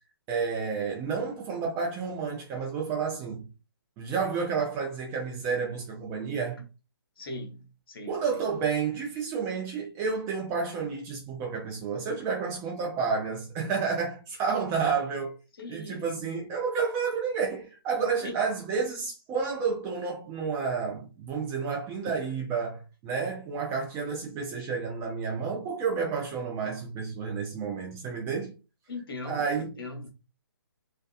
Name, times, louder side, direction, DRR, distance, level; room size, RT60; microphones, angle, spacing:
voice 1, 0.3-3.5 4.0-6.6 8.1-15.3 15.7-28.5 29.2-29.8, right 5 dB, 20° right, 0.6 m, -30 dB
voice 2, 7.2-8.4 15.6-16.0 18.2-18.3 28.9-30.1, left 2 dB, 65° left, 0.9 m, -40 dB
2.8 x 2.2 x 2.3 m
hypercardioid pair, 145°, 13 cm